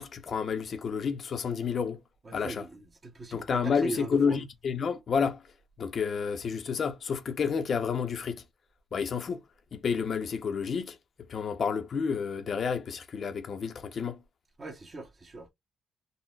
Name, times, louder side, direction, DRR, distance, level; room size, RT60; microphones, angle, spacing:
voice 1, 0.0-2.0 2.3-2.7 3.3-5.5 5.8-8.4 8.9-9.4 9.7-11.0 11.3-14.2, left 6 dB, 50° left, 0.6 m, -30 dB
voice 2, 2.2-4.4 14.6-15.5, right 2 dB, 35° right, 0.9 m, -39 dB
3.8 x 2.1 x 2.3 m
cardioid pair, 90°, 0 cm